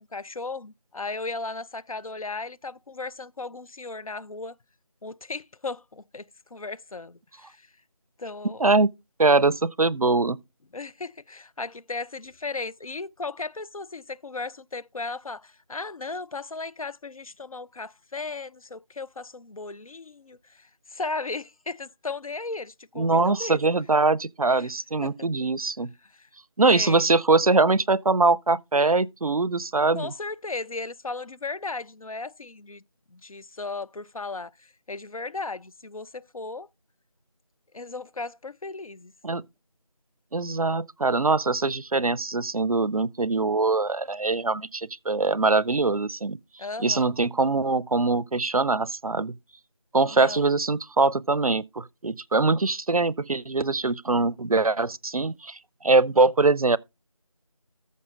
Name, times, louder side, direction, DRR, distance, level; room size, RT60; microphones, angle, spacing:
voice 1, 0.0-4.6 5.0-7.7 8.2-8.6 10.7-23.6 24.6-24.7 25.0-25.5 26.2-26.3 26.7-27.1 29.9-32.8 33.1-36.7 37.7-39.1 46.6-47.1 50.0-50.5, left 3 dB, 75° left, 0.5 m, -36 dB
voice 2, 8.6-8.9 9.2-10.4 23.0-25.9 26.6-30.1 39.2-39.4 40.3-46.4 46.8-49.3 49.9-56.8, right 3 dB, 80° right, 0.6 m, -23 dB
14.0 x 6.7 x 3.8 m
figure-of-eight pair, 175°, 18 cm